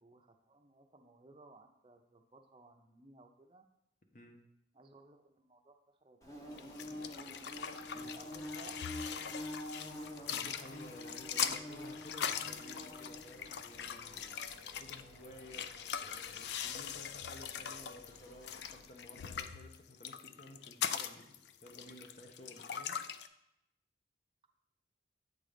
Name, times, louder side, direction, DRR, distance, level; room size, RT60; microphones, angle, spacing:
voice 1, 0.0-3.7 4.7-5.8 6.0-7.2 7.9-9.8, right 2 dB, 30° right, 4 dB, 0.6 m, -60 dB
Bird / Buzz, 6.2-18.8, left 1 dB, 20° left, 1.0 m, -49 dB
sound 1, 6.5-23.3, left 8 dB, 70° left, 0.4 m, -41 dB
voice 2, 7.9-8.4 10.3-14.2 14.8-15.7 16.0-23.0, left 1 dB, 45° left, 3 dB, 0.9 m, -54 dB
8.1 x 3.9 x 5.1 m, 0.84 s
head